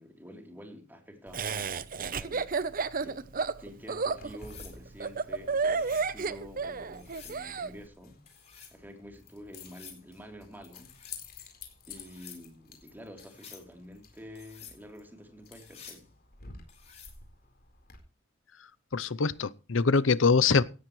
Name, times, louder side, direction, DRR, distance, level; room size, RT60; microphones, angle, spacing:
voice 1, 0.0-2.4 3.0-3.3 3.6-8.2 8.7-10.9 11.9-16.1, equal, 10° right, 3 dB, 3.5 m, -48 dB
Laughter, 1.3-7.7, right 4 dB, 45° right, 0.8 m, -31 dB
Keys jangling, 4.1-18.0, left 5 dB, 50° left, 4.3 m, -52 dB
sound 1, 4.3-4.8 5.6-6.1 6.9-7.4 8.3-8.8 9.5-10.0 10.8-11.2 12.0-12.4 13.2-13.7 14.4-14.8 15.5-16.0 16.7-17.2 19.1-19.4, left 7 dB, 35° left, 5.7 m, -51 dB
voice 2, 18.9-20.6, left 4 dB, 75° left, 17 dB, 0.7 m, -24 dB
18.0 x 13.5 x 3.2 m, 0.34 s
head